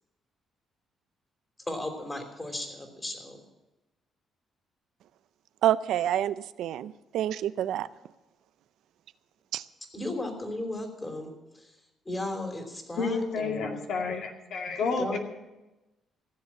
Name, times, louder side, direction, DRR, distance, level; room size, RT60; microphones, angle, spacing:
voice 1, 1.7-3.4 9.9-11.7 12.0-13.8 15.0-15.2, left 1 dB, 15° left, 5 dB, 3.2 m, -36 dB
voice 2, 5.6-7.9 9.5-9.6, right 11 dB, 80° right, 15 dB, 0.5 m, -28 dB
voice 3, 13.0-15.2, left 4 dB, 70° left, 2 dB, 2.3 m, -30 dB
16.0 x 7.4 x 8.6 m, 1.0 s
cardioid pair, 90°, 0 cm